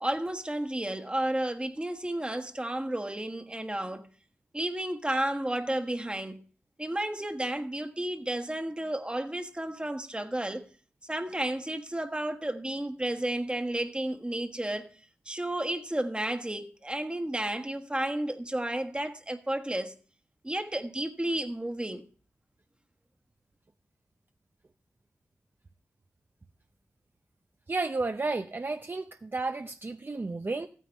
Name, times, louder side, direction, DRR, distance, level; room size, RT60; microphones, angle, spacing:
voice 1, 0.0-4.1 4.5-6.4 6.8-10.7 11.0-14.9 15.2-19.9 20.4-22.1, right 1 dB, 20° right, 1.3 m, -32 dB
voice 2, 27.7-30.7, right 3 dB, 40° right, 0.6 m, -32 dB
14.5 x 9.4 x 3.4 m
cardioid pair, 40°, 5 cm